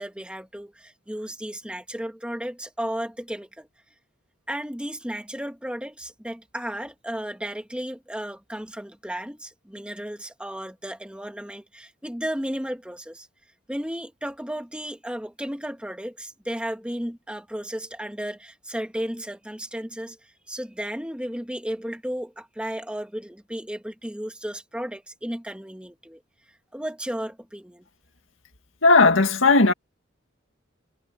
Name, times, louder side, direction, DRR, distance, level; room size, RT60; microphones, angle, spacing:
voice 1, 0.0-3.7 4.5-13.3 13.7-20.2 20.5-26.2 26.7-27.9, equal, 5° right, 1.7 m, -34 dB
voice 2, 28.8-29.7, left 3 dB, 75° left, 2.0 m, -16 dB
head